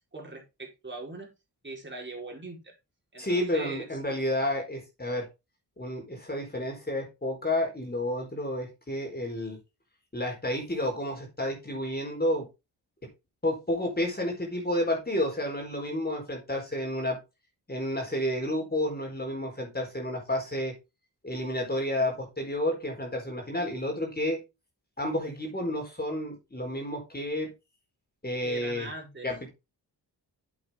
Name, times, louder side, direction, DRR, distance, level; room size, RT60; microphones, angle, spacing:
voice 1, 0.1-1.3 1.6-2.7 3.1-3.9 28.4-29.3, right 2 dB, 25° right, 0 dB, 4.5 m, -40 dB
voice 2, 3.2-5.3 5.8-9.6 10.1-12.5 13.4-17.2 17.7-20.7 21.2-24.4 25.0-27.5 28.2-28.9 29.2-29.5, left 1 dB, 25° left, 1 dB, 4.5 m, -30 dB
8.6 x 7.8 x 3.7 m, 0.26 s
cardioid pair, 80°, 41 cm